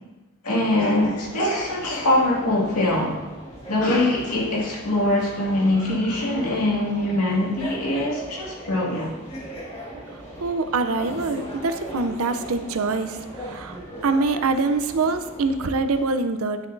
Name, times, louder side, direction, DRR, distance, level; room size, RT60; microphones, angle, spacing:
voice 1, 0.4-3.2 3.7-9.1, left 1 dB, 90° left, -4 dB, 2.1 m, -23 dB
sound 1, 0.6-16.1, right 1 dB, 30° left, 1.6 m, -39 dB
voice 2, 10.4-16.6, right 3 dB, 70° right, 8 dB, 0.6 m, -24 dB
10.5 x 6.9 x 2.6 m, 1.1 s
head